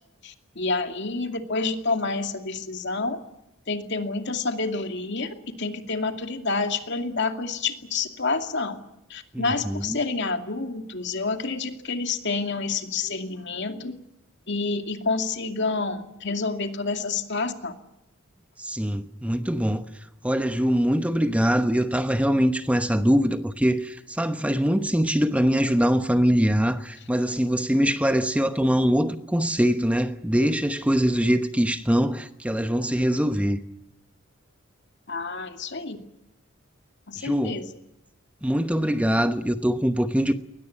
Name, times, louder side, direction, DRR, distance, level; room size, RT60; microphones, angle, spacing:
voice 1, 0.2-3.2 3.7-5.3 5.6-8.8 9.1-13.9 14.5-17.7 35.1-36.0 37.1-37.7, left 3 dB, 60° left, 2.5 m, -28 dB
voice 2, 9.3-10.0 18.6-19.8 20.2-33.6 37.2-37.6 38.4-40.3, equal, 5° right, 1.0 m, -23 dB
21.5 x 20.0 x 9.9 m
head